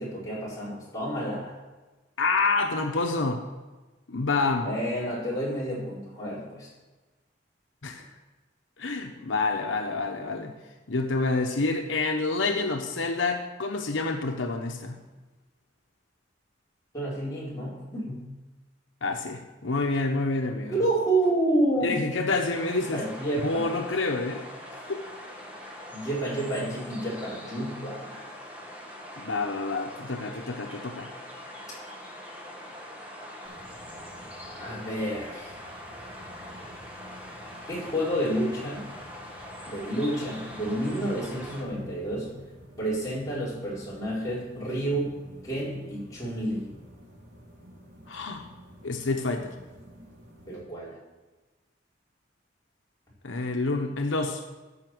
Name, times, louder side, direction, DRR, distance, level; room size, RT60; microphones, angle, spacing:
voice 1, 0.0-1.5 4.6-6.7 16.9-18.2 20.7-22.0 22.9-23.8 25.9-28.4 34.6-35.5 37.7-38.9 39.7-42.3 42.8-45.1 45.4-46.7 50.5-51.0, right 1 dB, 20° left, -8 dB, 4.6 m, -29 dB
voice 2, 2.2-3.4 4.1-4.8 7.8-8.0 8.8-10.5 10.9-15.0 19.0-20.8 21.8-23.0 23.4-24.4 24.7-25.0 29.2-31.1 48.1-48.4 48.8-49.6 53.2-54.4, left 3 dB, 85° left, 4 dB, 1.0 m, -28 dB
sound 1, 22.5-41.6, left 1 dB, 10° right, 1.7 m, -43 dB
sound 2, 33.4-50.6, equal, 75° right, 3.7 m, -51 dB
14.0 x 6.0 x 6.1 m, 1.2 s
head